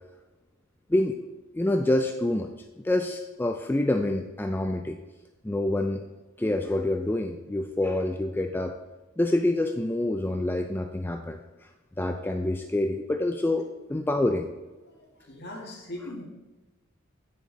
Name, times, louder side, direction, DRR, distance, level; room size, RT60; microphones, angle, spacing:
voice 1, 1.5-2.5 2.8-5.0 5.4-6.0 6.4-8.7 9.2-11.7 12.0-14.5, left 1 dB, 10° left, 4 dB, 0.3 m, -27 dB
voice 2, 14.9-16.2, left 1 dB, 55° left, -1 dB, 2.0 m, -40 dB
8.4 x 6.4 x 4.0 m, 1.1 s
head